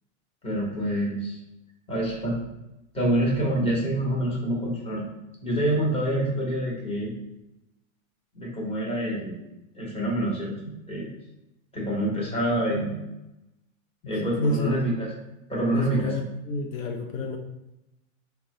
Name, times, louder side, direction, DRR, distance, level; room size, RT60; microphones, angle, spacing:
voice 1, 0.4-1.4 1.9-2.4 2.9-5.1 5.4-7.1 8.3-9.4 9.7-10.6 10.9-11.1 11.7-13.0 14.1-15.1 15.5-16.1, right 1 dB, 15° left, -4 dB, 1.0 m, -26 dB
voice 2, 14.2-14.9 15.7-17.4, left 2 dB, 75° left, 2 dB, 0.6 m, -29 dB
3.8 x 2.2 x 3.0 m, 0.92 s
hypercardioid pair, 120°, 40 cm